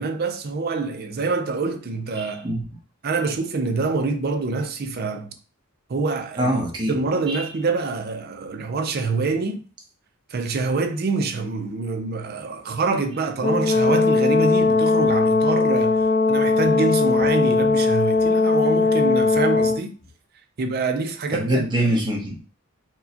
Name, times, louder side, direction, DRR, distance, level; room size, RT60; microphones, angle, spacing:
voice 1, 0.0-2.5 3.0-5.3 5.9-6.5 6.9-9.6 10.3-19.9 20.6-21.7, right 3 dB, 45° right, 0.4 m, -26 dB
voice 2, 2.2-2.6 6.4-7.0 7.3-7.4 21.3-22.4, right 1 dB, 20° right, 0.9 m, -24 dB
Brass instrument, 13.4-19.8, left 4 dB, 35° left, 0.4 m, -19 dB
4.5 x 2.2 x 2.8 m
head